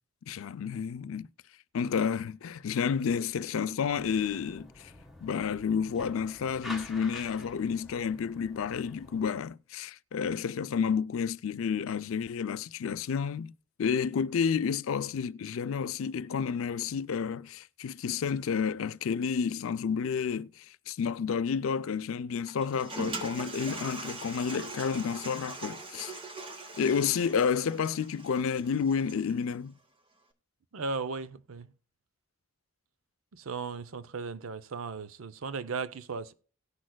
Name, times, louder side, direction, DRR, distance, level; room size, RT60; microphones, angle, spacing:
voice 1, 0.3-1.3 1.7-4.9 5.2-13.5 13.8-26.1 26.8-29.7, left 6 dB, 75° left, 0.4 m, -30 dB
sound 1, 3.9-9.3, left 1 dB, ahead, 1.2 m, -47 dB
Toilet flush, 22.5-29.4, right 2 dB, 25° right, 0.9 m, -42 dB
voice 2, 30.7-31.7 33.3-36.3, right 4 dB, 75° right, 0.6 m, -36 dB
18.0 x 6.3 x 2.2 m
head